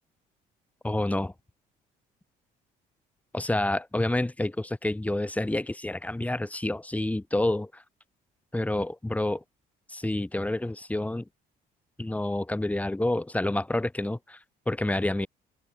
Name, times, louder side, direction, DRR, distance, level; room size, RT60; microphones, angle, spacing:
voice 1, 0.8-1.3 3.3-7.8 8.5-9.4 9.9-11.2 12.0-14.4 14.7-15.3, left 1 dB, 10° left, 4.9 m, -28 dB
open air
cardioid pair, 110°, 17 cm